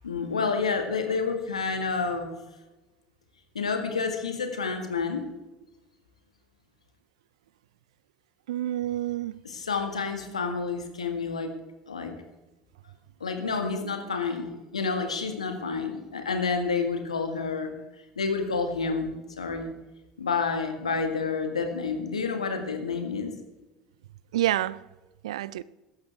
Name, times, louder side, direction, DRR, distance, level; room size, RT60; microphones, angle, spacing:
voice 1, 0.0-2.4 3.6-5.2 9.4-11.5 11.9-12.1 13.2-17.7 18.2-19.7 20.2-23.3, left 4 dB, 85° left, 1.8 m, -29 dB
voice 2, 8.5-9.4 24.3-24.8 25.2-25.6, right 13 dB, 70° right, 0.4 m, -28 dB
16.5 x 13.5 x 3.5 m
figure-of-eight pair, 70°, 3 cm